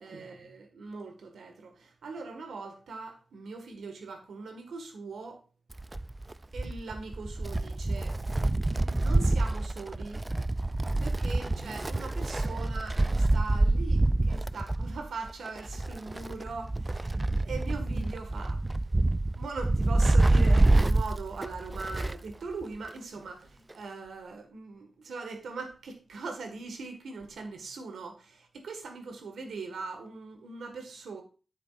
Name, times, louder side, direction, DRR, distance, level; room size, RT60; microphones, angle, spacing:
voice 1, 0.0-5.4 6.5-8.2 8.7-10.2 11.0-18.7 19.3-31.2, right 4 dB, 90° right, 1.7 m, -41 dB
Wind, 5.7-22.3 22.6-22.7 23.7-23.8, right 2 dB, 30° right, 0.4 m, -27 dB
10.5 x 7.5 x 2.5 m
cardioid pair, 45°, 0 cm